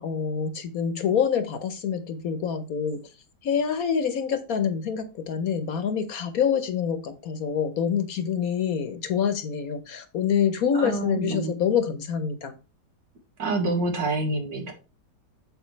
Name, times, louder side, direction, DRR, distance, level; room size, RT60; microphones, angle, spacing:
voice 1, 0.0-3.1 3.4-12.5, left 7 dB, 60° left, 11 dB, 1.2 m, -26 dB
voice 2, 10.7-11.5 13.4-14.7, right 2 dB, 85° right, 2 dB, 2.6 m, -27 dB
8.0 x 7.4 x 3.2 m, 0.30 s
omnidirectional pair, 1.9 m